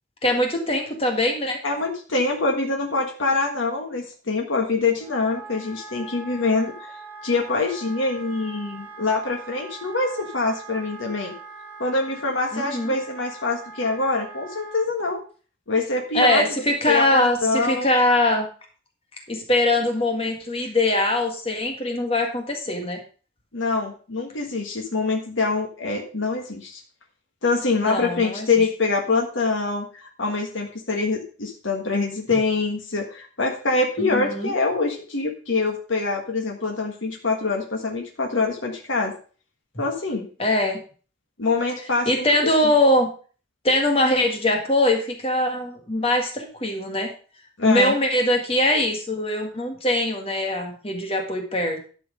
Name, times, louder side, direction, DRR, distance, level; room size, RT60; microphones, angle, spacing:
voice 1, 0.2-1.6 12.5-12.9 16.1-18.5 19.3-23.0 27.7-28.5 34.0-34.5 40.4-40.8 42.0-43.1 43.6-47.1 47.6-51.9, left 1 dB, 30° left, 4 dB, 1.6 m, -22 dB
voice 2, 1.6-6.7 7.2-11.3 11.8-15.2 15.7-16.4 16.9-17.9 23.5-26.8 27.4-39.1 39.8-40.3 41.4-42.3 42.6-42.7 47.6-47.9, left 3 dB, 80° left, 2 dB, 1.6 m, -24 dB
Wind instrument woodwind instrument, 5.0-14.9, right 3 dB, 10° right, 2.3 m, -42 dB
11.5 x 6.2 x 5.1 m, 0.39 s
head